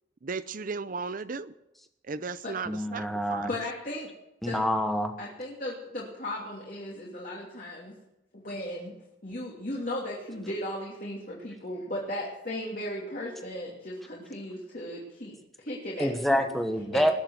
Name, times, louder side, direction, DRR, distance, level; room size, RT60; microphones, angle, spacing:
voice 1, 0.2-1.5 2.1-3.5, right 4 dB, 45° right, 15 dB, 0.6 m, -35 dB
voice 2, 2.7-3.5 4.4-5.1 16.0-17.1, equal, ahead, 5 dB, 1.3 m, -27 dB
voice 3, 3.4-4.1 4.5-4.6 5.2-7.9 8.3-8.9 9.2-16.4 16.9-17.1, left 1 dB, 45° left, -4 dB, 2.9 m, -36 dB
20.0 x 7.3 x 7.9 m, 0.89 s
head